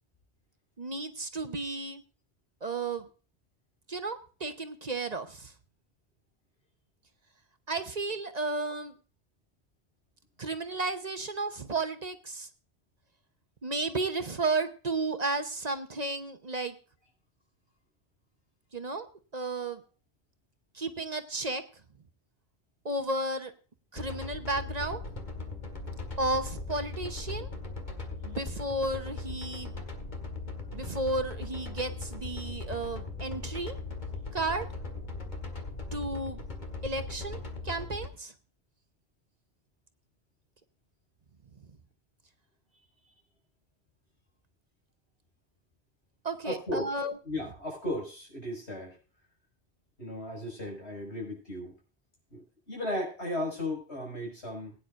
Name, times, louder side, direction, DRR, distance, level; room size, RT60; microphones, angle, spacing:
voice 1, 0.8-2.0 2.6-3.1 3.9-5.5 7.7-8.9 10.4-12.5 13.6-16.7 18.7-19.1 19.3-19.8 20.7-21.6 22.8-23.5 23.9-25.0 26.2-27.5 28.2-29.7 30.7-33.8 34.3-34.6 35.9-36.4 36.8-38.3 46.2-47.1, right 2 dB, 40° right, 8 dB, 1.0 m, -33 dB
sound 1, 24.0-38.1, left 3 dB, 45° left, 2.0 m, -39 dB
voice 2, 46.4-46.9 47.2-49.0 50.0-51.7 52.3-54.7, left 1 dB, 85° left, 0 dB, 5.9 m, -35 dB
21.0 x 9.6 x 2.5 m, 0.36 s
omnidirectional pair, 1.1 m